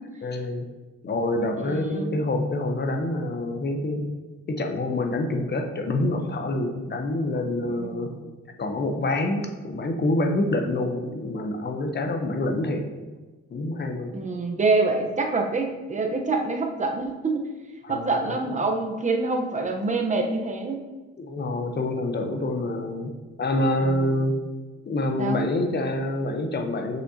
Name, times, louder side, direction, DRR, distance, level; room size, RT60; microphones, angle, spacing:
voice 1, 0.2-0.7 1.0-4.1 4.5-8.1 8.6-12.9 13.5-14.1 17.8-18.6 21.2-23.1 23.4-24.4 24.9-27.0, left 2 dB, 35° left, 4 dB, 0.7 m, -26 dB
voice 2, 1.6-2.2 7.6-8.3 14.1-17.4 17.9-20.8 23.8-24.3 25.2-25.4, right 3 dB, 25° right, 3 dB, 0.9 m, -26 dB
6.1 x 5.5 x 2.8 m, 1.3 s
cardioid pair, 90°, 30 cm